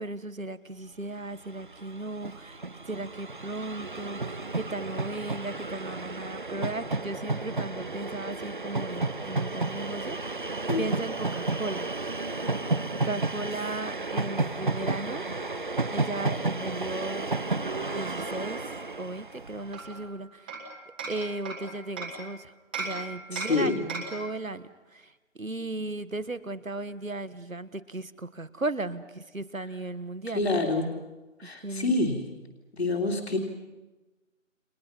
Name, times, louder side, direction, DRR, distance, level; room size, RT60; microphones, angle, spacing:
voice 1, 0.0-10.2 10.8-11.9 13.0-15.5 15.9-17.3 17.9-20.6 21.1-30.4 31.4-32.0, right 2 dB, 90° right, 14 dB, 1.5 m, -36 dB
Train, 1.2-1.3 1.5-19.9, right 3 dB, 40° right, 0.9 m, -32 dB
Hammer, 19.7-22.2 22.7-24.3, right 3 dB, 5° right, 1.5 m, -37 dB
voice 2, 23.3-23.8 30.3-30.9 31.4-32.2 32.7-33.4, left 3 dB, 55° left, 2 dB, 3.2 m, -27 dB
30.0 x 24.5 x 5.8 m, 1.1 s
figure-of-eight pair, 160°, 39 cm